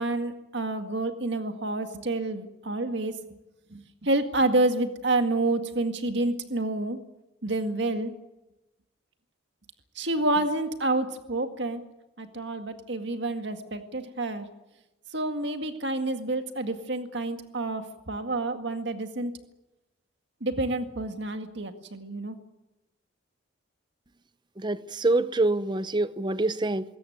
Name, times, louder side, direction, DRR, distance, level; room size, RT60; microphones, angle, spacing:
voice 1, 0.0-3.2 3.7-7.0 7.4-8.1 10.0-11.8 12.2-14.5 15.1-19.3 20.4-22.4, right 2 dB, 60° right, 7 dB, 2.0 m, -28 dB
voice 2, 24.6-26.8, right 2 dB, 20° right, 15 dB, 0.7 m, -25 dB
21.0 x 17.5 x 9.5 m, 0.99 s
head